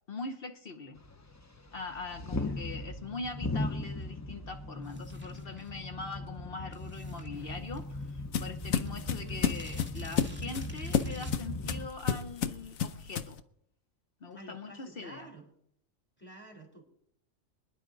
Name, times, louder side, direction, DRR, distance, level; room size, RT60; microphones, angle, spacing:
voice 1, 0.1-1.0 1.7-13.4 14.2-15.3, left 3 dB, 50° left, 1.0 m, -42 dB
sound 1, 1.0-11.9, left 2 dB, 25° left, 0.3 m, -38 dB
voice 2, 2.2-2.6 9.2-9.5 14.3-15.5 16.2-16.8, right 2 dB, 10° left, 3.6 m, -50 dB
sound 2, 4.8-5.8 6.7-8.1 8.4-8.5 8.7-12.2, right 1 dB, 10° right, 2.1 m, -53 dB
sound 3, 7.4-13.4, left 8 dB, 80° left, 1.2 m, -32 dB
26.5 x 10.5 x 3.9 m
omnidirectional pair, 1.4 m